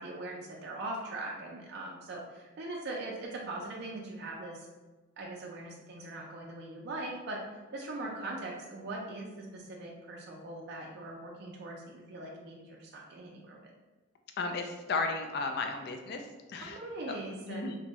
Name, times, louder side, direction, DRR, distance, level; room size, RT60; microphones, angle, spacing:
voice 1, 0.0-4.7 5.2-7.4 7.7-13.7 16.6-17.7, right 2 dB, 55° right, -2 dB, 0.4 m, -41 dB
voice 2, 14.4-16.8 17.1-17.2 17.5-17.8, left 3 dB, 55° left, 5 dB, 0.3 m, -34 dB
2.6 x 2.2 x 3.0 m, 1.2 s
head